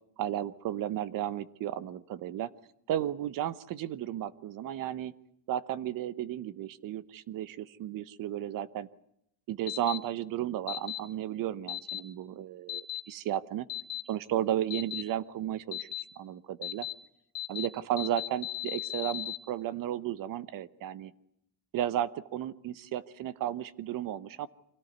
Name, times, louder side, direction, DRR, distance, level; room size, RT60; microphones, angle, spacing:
voice 1, 0.2-2.5 2.9-5.1 5.5-8.9 9.5-13.7 14.1-15.9 16.2-16.9 17.5-21.1 21.7-24.5, right 11 dB, 45° right, 17 dB, 1.0 m, -34 dB
sound 1, 9.7-10.0 10.7-11.0 11.7-12.0 12.7-13.0 13.7-14.0 14.7-15.0 15.7-16.0 16.6-16.9 17.3-17.7 18.0-19.4, left 13 dB, 60° left, 1.9 m, -36 dB
25.0 x 17.5 x 9.5 m, 0.76 s
cardioid pair, 160°, 47 cm